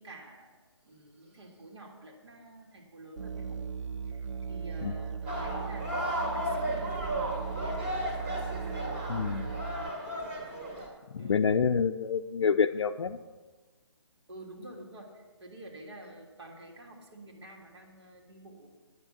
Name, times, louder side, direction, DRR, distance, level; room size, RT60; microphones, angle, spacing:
voice 1, 0.0-3.7 4.0-4.2 4.5-8.3 11.2-11.4 14.3-18.7, right 1 dB, 65° right, -1 dB, 3.1 m, -49 dB
Musical instrument, 3.2-9.9, right 6 dB, 80° right, 0.4 m, -38 dB
sound 1, 5.3-10.9, equal, 25° right, 2.3 m, -34 dB
voice 2, 9.1-9.5 11.1-13.2, left 6 dB, 65° left, 6 dB, 0.5 m, -27 dB
9.4 x 9.3 x 5.9 m, 1.3 s
hypercardioid pair, 160°, 15 cm